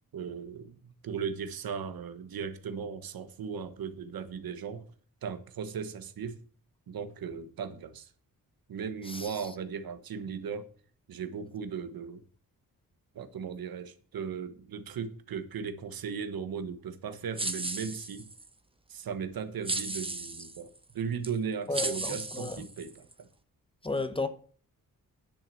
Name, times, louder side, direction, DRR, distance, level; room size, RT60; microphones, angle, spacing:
voice 1, 0.1-4.9 5.2-6.4 6.9-8.1 8.7-10.7 11.1-12.2 13.1-18.3 18.9-23.3, right 6 dB, 90° right, 1.4 m, -37 dB
sound 1, 17.4-18.5 19.6-20.6 21.2-21.3 21.7-23.1, right 2 dB, 15° right, 1.1 m, -35 dB
voice 2, 21.7-22.6 23.8-24.3, left 3 dB, 15° left, 1.1 m, -32 dB
10.0 x 7.6 x 7.0 m
wide cardioid pair, 105°, 34 cm